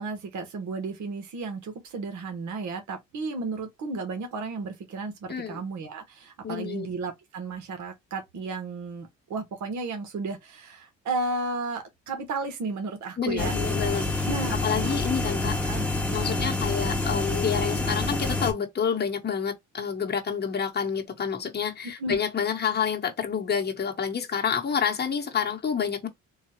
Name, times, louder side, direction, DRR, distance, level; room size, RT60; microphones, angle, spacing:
voice 1, 0.0-13.5 14.2-15.0 15.6-15.9 16.3-16.5 21.8-22.2, right 3 dB, 70° right, 1.2 m, -33 dB
voice 2, 5.3-5.6 6.4-6.9 13.2-14.2 14.5-15.5 16.1-26.1, left 7 dB, 35° left, 1.1 m, -28 dB
sound 1, 13.4-18.5, left 2 dB, 5° left, 1.0 m, -27 dB
3.9 x 2.3 x 3.0 m
cardioid pair, 90°, 30 cm